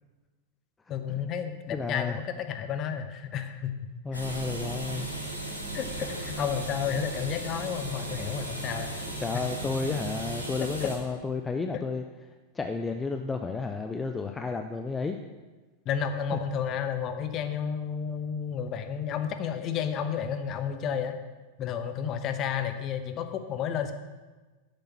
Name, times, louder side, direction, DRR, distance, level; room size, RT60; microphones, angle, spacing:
voice 1, 0.9-3.8 4.1-4.2 5.7-9.0 9.3-9.4 10.8-10.9 15.8-21.2 21.6-23.9, left 8 dB, 35° left, 8 dB, 1.0 m, -31 dB
voice 2, 1.7-2.2 4.0-5.1 9.2-12.0 12.5-15.2, left 4 dB, 15° left, 5 dB, 0.6 m, -32 dB
sound 1, 4.1-11.0, right 2 dB, 85° right, 2.2 m, -36 dB
9.6 x 6.9 x 7.1 m, 1.3 s
figure-of-eight pair, 90°, 0 cm